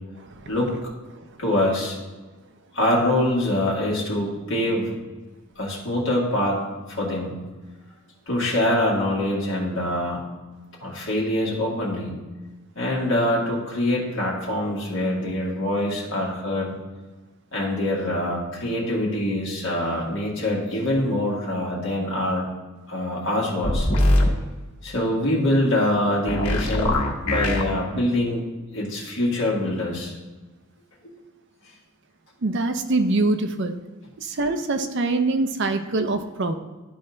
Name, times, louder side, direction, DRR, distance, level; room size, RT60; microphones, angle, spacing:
voice 1, 0.2-0.5 32.4-33.8 34.2-36.5, right 2 dB, 50° right, 8 dB, 0.5 m, -24 dB
voice 2, 1.4-2.0 2.7-5.0 5.6-6.6 6.9-7.4 8.3-10.2 10.8-12.2 12.8-16.7 17.5-22.4 22.9-23.9 24.8-27.0 27.2-28.4 28.7-30.1 31.0-31.1, left 1 dB, 55° left, -4 dB, 2.0 m, -24 dB
sound 1, 23.6-24.3 26.3-27.6, left 1 dB, 80° left, 1.6 m, -21 dB
12.0 x 4.3 x 3.8 m, 1.2 s
head